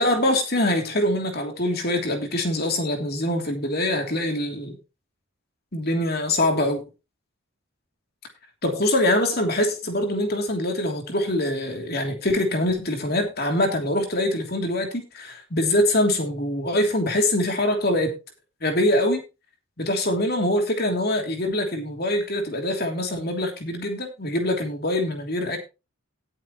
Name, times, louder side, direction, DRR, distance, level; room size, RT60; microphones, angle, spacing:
voice 1, 0.0-4.8 5.7-6.8 8.6-18.1 18.6-19.2 19.8-25.6, left 1 dB, 45° left, 3.0 m, -24 dB
18.5 x 7.5 x 3.1 m
head